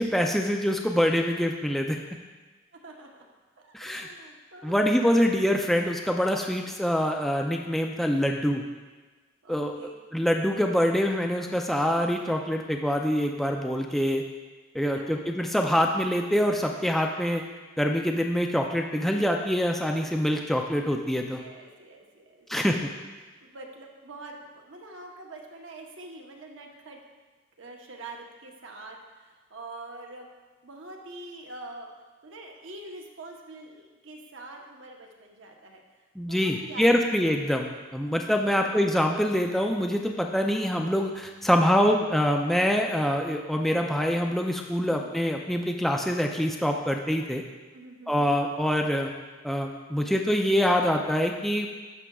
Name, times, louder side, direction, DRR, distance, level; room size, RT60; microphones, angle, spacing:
voice 1, 0.0-2.0 3.7-4.1 4.6-8.6 9.5-9.7 10.1-14.2 14.7-17.4 17.8-21.4 22.5-22.8 36.2-47.4 48.1-49.1 49.4-51.7, equal, ahead, 2 dB, 0.4 m, -25 dB
voice 2, 2.7-3.2 3.6-4.8 9.4-9.9 14.9-15.2 21.4-22.9 23.4-27.0 27.6-30.3 30.6-31.9 32.2-35.8 36.2-37.0 37.4-37.6 38.5-38.7 44.9-45.2 47.7-48.4, right 2 dB, 70° right, 1 dB, 0.9 m, -45 dB
11.0 x 6.0 x 2.3 m, 1.3 s
head